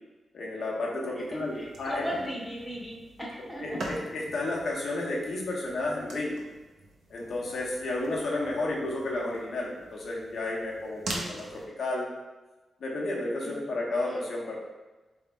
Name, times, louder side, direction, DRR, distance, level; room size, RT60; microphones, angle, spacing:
voice 1, 0.3-2.0 3.6-6.4 7.1-12.1 12.8-14.5, left 2 dB, 60° left, -3 dB, 1.0 m, -32 dB
sound 1, 1.2-11.7, right 2 dB, 65° right, 0.8 m, -44 dB
voice 2, 1.3-3.8 13.4-13.7 14.1-14.2, equal, ahead, -5 dB, 0.8 m, -37 dB
4.0 x 3.5 x 3.5 m, 1.2 s
wide cardioid pair, 160°, 0 cm